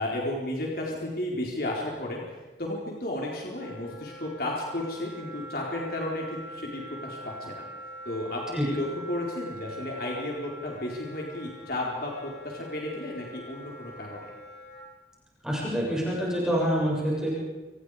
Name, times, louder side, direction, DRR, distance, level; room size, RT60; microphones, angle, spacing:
voice 1, 0.0-7.7 8.1-14.3, left 1 dB, 55° left, -2 dB, 4.3 m, -33 dB
Wind instrument woodwind instrument, 3.6-14.9, equal, 80° left, 7.8 m, -44 dB
voice 2, 15.4-17.3, equal, 5° right, -5 dB, 7.0 m, -26 dB
30.0 x 26.5 x 5.1 m, 1.2 s
head